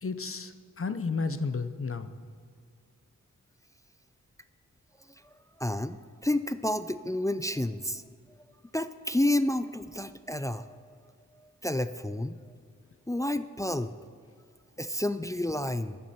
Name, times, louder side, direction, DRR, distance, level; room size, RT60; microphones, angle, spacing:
voice 1, 0.0-2.1, left 4 dB, 45° left, 10 dB, 0.7 m, -32 dB
voice 2, 5.6-8.0 8.7-11.0 11.4-12.4 13.1-13.9 14.8-16.0, left 1 dB, 10° left, 11 dB, 0.4 m, -30 dB
16.0 x 10.5 x 4.3 m, 2.1 s
wide cardioid pair, 95°, 31 cm